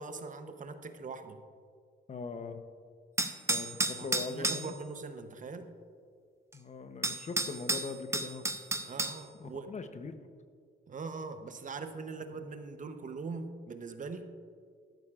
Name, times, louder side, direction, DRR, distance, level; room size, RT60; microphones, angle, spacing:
voice 1, 0.0-1.4 4.0-5.7 8.8-9.7 10.9-14.3, right 4 dB, 40° right, 8 dB, 0.8 m, -42 dB
voice 2, 2.1-2.6 3.5-4.7 6.5-8.4 9.4-10.2, left 4 dB, 35° left, 9 dB, 0.8 m, -41 dB
sound 1, 3.2-4.7 6.5-6.6 7.0-9.2, right 2 dB, 15° right, 0.7 m, -31 dB
14.0 x 11.5 x 2.4 m, 2.2 s
cardioid pair, 90°, 20 cm